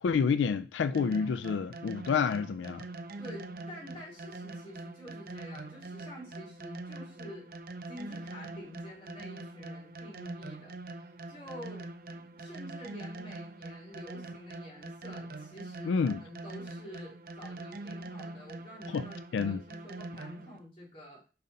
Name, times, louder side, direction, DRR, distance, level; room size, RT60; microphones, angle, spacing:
voice 1, 0.0-2.8 15.8-16.2 18.9-19.0 19.3-19.6, left 6 dB, 85° left, 0.3 m, -28 dB
sound 1, 0.9-20.6, right 2 dB, 50° right, 0.6 m, -44 dB
voice 2, 3.2-7.5 7.9-21.2, left 1 dB, 30° left, 3.1 m, -48 dB
5.4 x 5.3 x 4.1 m
head